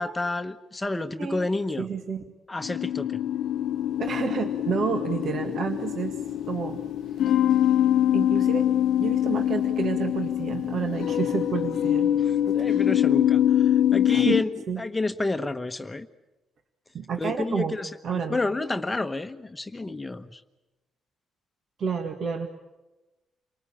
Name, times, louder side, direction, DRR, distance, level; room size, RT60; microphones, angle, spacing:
voice 1, 0.0-1.9 2.5-3.2 12.5-14.5 14.8-16.1 17.2-20.4, left 2 dB, 15° left, 7 dB, 1.1 m, -30 dB
voice 2, 1.2-1.5 1.8-2.2 4.0-6.2 6.5-6.8 7.3-7.4 8.1-8.7 9.0-12.1 12.6-12.8 14.1-14.4 14.7-14.8 16.9-17.8 18.0-18.4 21.8-22.5, right 6 dB, 60° right, 5 dB, 2.0 m, -30 dB
sound 1, 2.6-14.4, left 11 dB, 75° left, 0.8 m, -24 dB
28.5 x 19.0 x 8.8 m, 1.1 s
cardioid pair, 90°, 0 cm